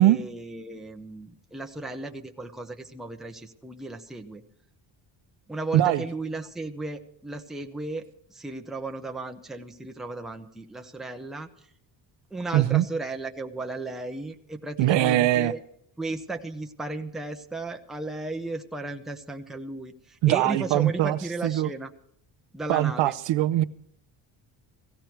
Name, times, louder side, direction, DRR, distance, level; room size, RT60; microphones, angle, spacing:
voice 1, 0.0-4.4 5.5-11.7 12.3-15.6 16.0-21.9 22.5-23.2, right 2 dB, ahead, 0.7 m, -35 dB
voice 2, 12.5-12.8 14.8-15.5 20.2-21.7 22.7-23.6, right 14 dB, 65° right, 0.7 m, -21 dB
17.5 x 15.0 x 4.6 m
cardioid pair, 170°, 47 cm